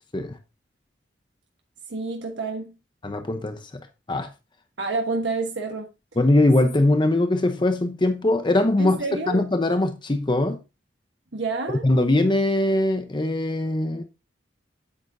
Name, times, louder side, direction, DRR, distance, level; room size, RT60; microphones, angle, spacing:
voice 1, 1.9-2.8 4.8-5.9 8.8-9.4 11.3-11.8, right 3 dB, 75° right, 1.3 m, -28 dB
voice 2, 3.0-3.7 4.1-4.3 6.2-9.0 9.3-10.6 11.8-14.0, left 2 dB, 25° left, 0.7 m, -21 dB
8.9 x 8.6 x 2.6 m
head